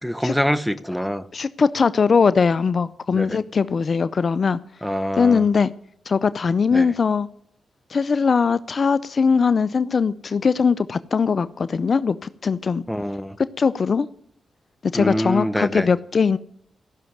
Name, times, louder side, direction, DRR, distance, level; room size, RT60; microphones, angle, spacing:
voice 1, 0.0-1.3 3.1-3.4 4.8-5.4 6.7-6.9 12.9-13.4 14.9-15.9, equal, ahead, 12 dB, 1.1 m, -25 dB
voice 2, 1.3-4.6 5.2-5.7 6.1-7.3 7.9-12.8 13.6-14.1 14.8-16.4, left 5 dB, 55° left, 16 dB, 0.5 m, -20 dB
15.0 x 6.3 x 9.4 m, 0.67 s
supercardioid pair, 40°, 0 cm